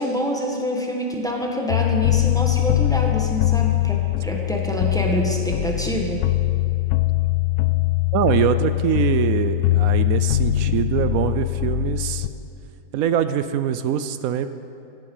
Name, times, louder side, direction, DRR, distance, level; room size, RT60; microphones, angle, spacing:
voice 1, 0.0-6.2, equal, 5° left, 0 dB, 1.6 m, -26 dB
sound 1, 1.7-12.3, left 15 dB, 85° left, 1.1 m, -22 dB
voice 2, 8.1-12.3 12.9-14.5, right 9 dB, 80° right, 11 dB, 1.0 m, -23 dB
16.0 x 12.0 x 5.5 m, 2.6 s
omnidirectional pair, 1.5 m